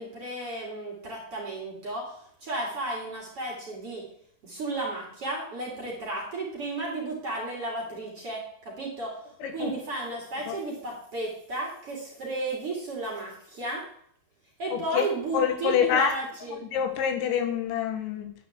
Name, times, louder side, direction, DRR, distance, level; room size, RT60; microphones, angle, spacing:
voice 1, 0.0-4.0 4.4-9.2 9.5-13.8 14.6-16.6, right 2 dB, 35° right, -2 dB, 3.0 m, -33 dB
voice 2, 9.4-9.7 10.5-10.6 14.7-15.1 15.3-16.2 16.6-18.3, left 8 dB, 80° left, 5 dB, 3.6 m, -26 dB
11.0 x 5.0 x 8.1 m, 0.65 s
omnidirectional pair, 5.4 m